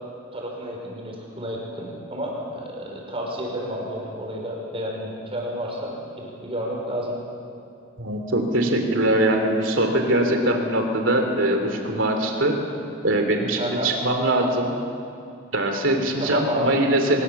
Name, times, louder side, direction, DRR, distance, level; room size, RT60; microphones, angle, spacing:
voice 1, 0.3-7.1 13.6-13.9 16.2-16.8, equal, 30° right, -1 dB, 5.4 m, -31 dB
voice 2, 8.0-12.6 13.0-14.7 15.5-17.2, right 1 dB, 65° right, 4 dB, 3.2 m, -22 dB
23.0 x 21.0 x 7.3 m, 2.6 s
head